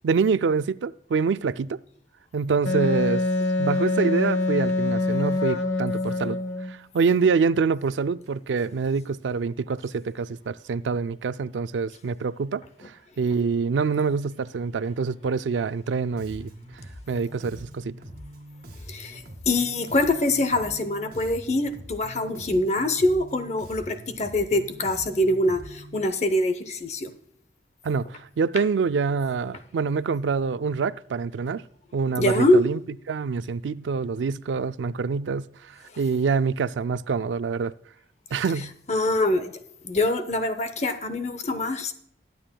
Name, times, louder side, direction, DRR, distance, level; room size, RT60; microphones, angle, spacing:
voice 1, 0.0-1.8 2.3-3.2 3.6-6.4 6.7-16.5 17.1-17.9 27.8-31.6 31.9-32.8 33.1-37.7 38.3-38.7, right 5 dB, 85° right, 0.4 m, -26 dB
Wind instrument woodwind instrument, 2.6-6.7, left 2 dB, 85° left, 1.1 m, -25 dB
Bass guitar, 16.2-26.1, equal, 55° right, 2.2 m, -43 dB
voice 2, 18.9-27.1 32.2-32.6 38.9-39.5 39.8-41.9, left 2 dB, 40° left, 0.7 m, -24 dB
21.5 x 9.3 x 2.3 m
head